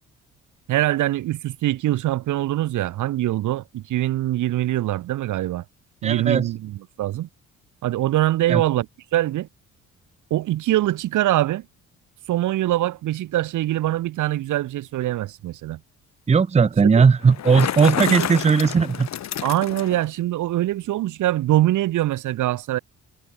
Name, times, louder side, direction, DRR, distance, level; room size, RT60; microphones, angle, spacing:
voice 1, 0.7-5.6 6.0-7.3 7.8-8.9 9.1-9.5 10.3-11.6 12.3-15.8 17.0-17.1 18.0-18.3 19.4-22.8, right 14 dB, 80° right, 1.8 m, -23 dB
voice 2, 6.0-6.5 8.5-8.6 16.3-19.1, right 5 dB, 20° right, 0.6 m, -17 dB
Bicycle, 17.2-20.1, left 11 dB, 65° left, 2.3 m, -29 dB
cardioid pair, 90°, 30 cm